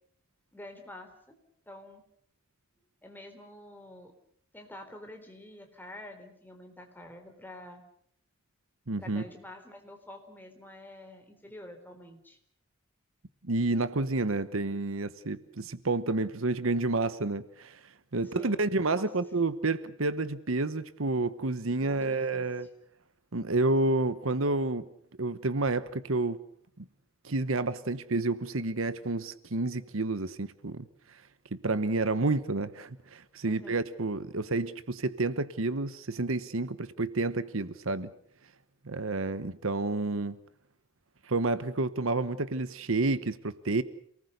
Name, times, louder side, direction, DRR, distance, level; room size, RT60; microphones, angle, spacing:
voice 1, 0.5-1.3 1.7-2.0 3.0-4.1 4.5-7.8 9.0-12.4 18.2-19.1 21.8-22.7 33.4-33.8, left 1 dB, 10° left, 4 dB, 3.9 m, -48 dB
voice 2, 8.9-9.2 13.4-17.8 18.1-22.7 23.3-24.9 25.2-26.4 26.8-26.9 27.2-30.9 31.5-38.1 38.8-40.4 41.2-43.8, right 2 dB, 70° right, 14 dB, 1.1 m, -29 dB
28.0 x 19.5 x 6.6 m, 0.65 s
head